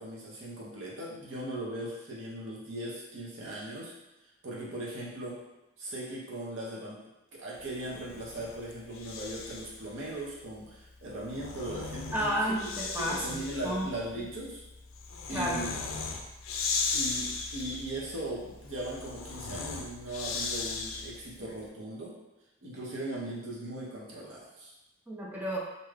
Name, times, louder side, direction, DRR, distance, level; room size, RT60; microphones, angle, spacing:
voice 1, 0.0-3.9 4.4-5.4 5.8-7.0 7.3-12.6 13.0-14.6 15.3-15.7 16.9-22.2 22.6-24.7, right 1 dB, 70° right, -5 dB, 0.8 m, -39 dB
Breathing, 7.8-9.8 11.1-21.3, left 4 dB, 75° left, 0.4 m, -37 dB
voice 2, 12.1-13.9 15.3-15.6 25.1-25.6, equal, 10° right, -4 dB, 0.4 m, -32 dB
2.7 x 2.3 x 3.2 m, 0.95 s
head